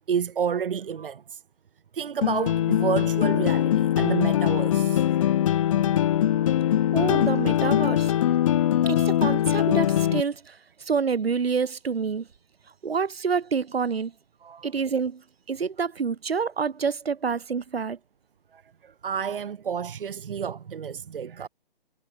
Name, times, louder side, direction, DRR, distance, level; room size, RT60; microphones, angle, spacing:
voice 1, 0.1-1.4 1.9-5.4 5.7-5.9 6.3-6.5 9.0-9.1 14.4-14.7 18.5-21.5, right 7 dB, 65° right, 1.3 m, -30 dB
sound 1, 2.2-10.2, left 11 dB, 35° left, 1.5 m, -22 dB
voice 2, 6.9-8.1 8.9-12.3 12.8-14.1 14.6-15.2 15.5-18.0, right 5 dB, 80° right, 2.4 m, -27 dB
hypercardioid pair, 160°, 30 cm